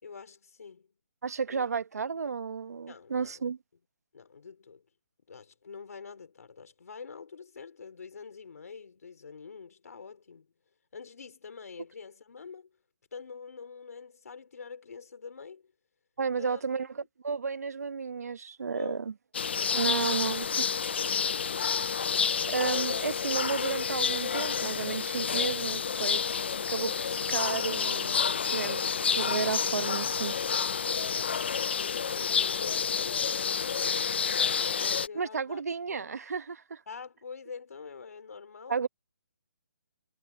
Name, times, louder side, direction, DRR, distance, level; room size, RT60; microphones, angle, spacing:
voice 1, 0.0-0.9 1.5-1.7 2.9-3.4 4.1-4.9 5.3-10.5 10.9-12.7 13.1-15.7 16.3-16.9 18.7-19.1 19.8-20.5 20.8-21.4 27.5-27.8 31.0-35.6 35.9-36.1 36.9-38.8, left 5 dB, 60° left, 3.9 m, -46 dB
voice 2, 1.2-3.6 16.2-16.9 17.2-19.1 19.7-20.5 22.5-26.3 26.7-28.2 28.5-28.9 29.1-30.4 35.1-36.8 38.7-38.9, right 5 dB, 65° right, 1.3 m, -32 dB
sound 1, 19.3-35.1, left 6 dB, 40° left, 0.4 m, -29 dB
hypercardioid pair, 175°, 9 cm